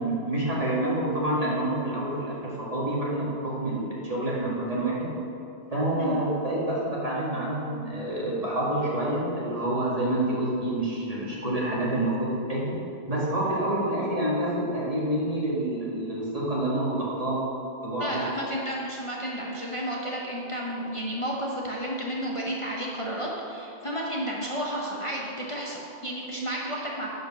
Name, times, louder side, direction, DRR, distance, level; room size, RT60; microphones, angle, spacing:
voice 1, 0.0-5.0 5.7-12.6 13.1-17.4 17.8-18.2, right 1 dB, 35° right, -6 dB, 2.2 m, -28 dB
voice 2, 18.0-27.1, equal, 30° left, -4 dB, 1.0 m, -32 dB
10.5 x 5.3 x 6.2 m, 2.8 s
omnidirectional pair, 1.1 m